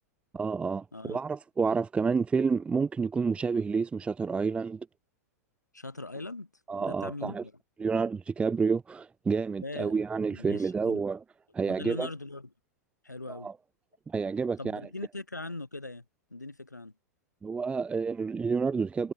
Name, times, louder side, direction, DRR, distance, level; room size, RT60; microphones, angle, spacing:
voice 1, 0.3-4.9 6.7-7.4 7.8-11.2 11.5-12.1 13.3-13.5 14.1-14.8 17.4-19.1, right 5 dB, 10° right, 0.5 m, -29 dB
voice 2, 5.7-6.5 6.9-7.5 9.6-9.9 10.3-11.0 11.7-12.5 13.0-13.5 14.6-16.0 16.3-16.9, left 2 dB, 85° left, 3.7 m, -40 dB
figure-of-eight pair, 95°, 9 cm